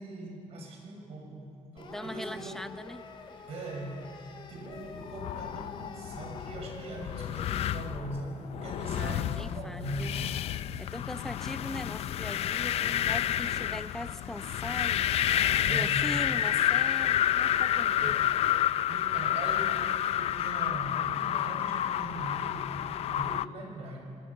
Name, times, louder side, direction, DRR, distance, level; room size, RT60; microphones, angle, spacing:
voice 1, 0.0-2.7 3.5-10.1 15.6-16.0 18.0-18.3 18.9-22.7 23.1-24.0, right 2 dB, 65° right, 1 dB, 6.7 m, -40 dB
sound 1, 1.8-8.0, left 4 dB, 45° left, 2.8 m, -48 dB
voice 2, 1.9-3.1 8.9-10.2 10.8-18.3, left 1 dB, 5° left, 10 dB, 0.7 m, -41 dB
sound 2, 4.9-23.4, left 11 dB, 65° left, 0.5 m, -30 dB
27.0 x 21.5 x 7.3 m, 2.6 s
cardioid pair, 155°, 11 cm